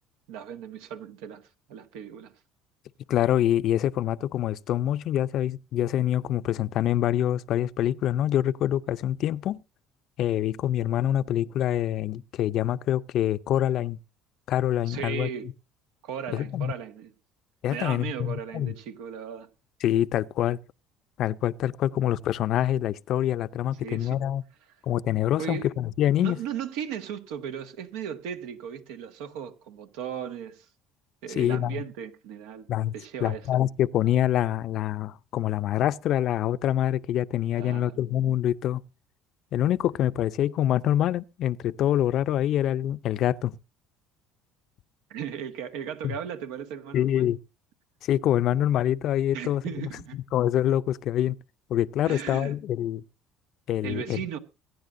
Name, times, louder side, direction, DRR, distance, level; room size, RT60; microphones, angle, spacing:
voice 1, 0.3-2.3 14.9-15.5 16.0-17.1 17.7-19.5 23.8-24.2 25.4-25.7 26.2-30.7 31.2-32.7 32.9-33.5 37.6-38.0 45.1-47.3 49.3-50.2 52.0-52.5 53.8-54.4, right 8 dB, 90° right, 1.6 m, -36 dB
voice 2, 3.1-9.6 10.2-14.0 14.5-15.3 16.3-16.7 17.6-18.7 19.8-20.6 21.2-24.4 24.8-26.4 31.4-31.8 32.7-32.9 33.2-38.8 39.5-43.6 46.9-47.4 48.0-49.9 50.3-51.3 51.7-53.0 53.7-54.2, left 11 dB, 55° left, 0.5 m, -25 dB
23.5 x 9.9 x 2.6 m
cardioid pair, 120°, 0 cm